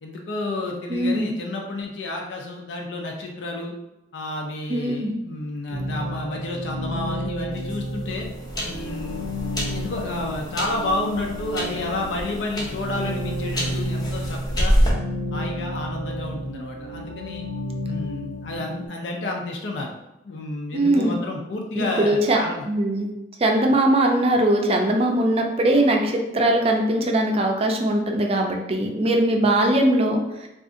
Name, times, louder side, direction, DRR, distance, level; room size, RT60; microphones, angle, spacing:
voice 1, 0.0-3.7 4.1-8.3 8.6-9.3 9.7-14.7 15.3-17.5 17.8-19.9 20.2-22.7, left 2 dB, 75° left, 0 dB, 0.5 m, -30 dB
voice 2, 0.9-1.3 4.7-5.1 20.7-21.1 21.8-22.4 22.7-23.1 23.4-30.2, right 1 dB, 35° right, 2 dB, 0.4 m, -20 dB
sound 1, 5.7-18.9, equal, 80° right, 0.5 m, -32 dB
sound 2, 7.5-14.9, equal, 20° left, 0.7 m, -28 dB
2.5 x 2.4 x 3.6 m, 0.93 s
head